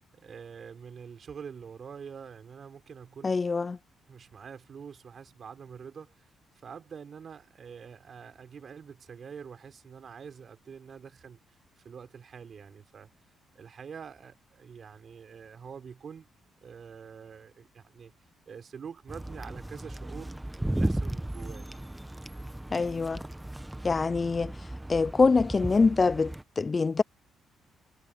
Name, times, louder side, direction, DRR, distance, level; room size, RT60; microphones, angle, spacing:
voice 1, 0.1-3.4 4.1-6.2 6.5-13.1 13.5-16.3 16.6-18.1 18.5-21.7, right 6 dB, 50° right, 4.0 m, -46 dB
voice 2, 3.2-3.8 22.7-23.2 23.8-24.5 24.9-27.0, left 4 dB, 30° left, 0.3 m, -24 dB
sound 1, 19.1-26.4, right 1 dB, 10° right, 1.1 m, -35 dB
cardioid pair, 90°, 0 cm